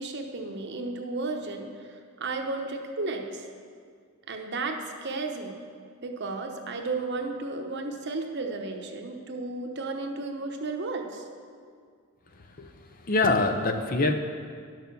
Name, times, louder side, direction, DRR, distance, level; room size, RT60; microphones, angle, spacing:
voice 1, 0.0-3.5 4.3-5.6 6.0-11.2, right 3 dB, 50° right, 4 dB, 0.9 m, -33 dB
voice 2, 13.1-14.1, left 2 dB, 40° left, 6 dB, 0.6 m, -24 dB
10.5 x 6.5 x 6.8 m, 2.1 s
head